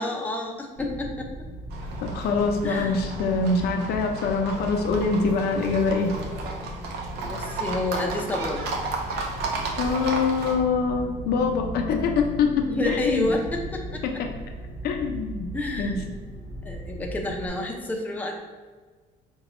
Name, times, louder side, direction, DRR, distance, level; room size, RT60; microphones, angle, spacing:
voice 1, 0.0-1.5 2.6-3.0 7.2-8.7 12.7-14.2 15.5-16.0 16.6-18.4, left 1 dB, 10° left, 1 dB, 0.5 m, -29 dB
sound 1, 0.8-17.5, equal, 20° right, 1.1 m, -37 dB
Livestock farm animals working animals, 1.7-10.6, right 3 dB, 80° right, 0.6 m, -34 dB
voice 2, 2.0-6.1 9.8-13.3 14.0-14.3 14.8-15.5 15.8-16.0, left 4 dB, 70° left, 3 dB, 0.5 m, -24 dB
5.1 x 2.3 x 3.0 m, 1.4 s
cardioid pair, 110°, 17 cm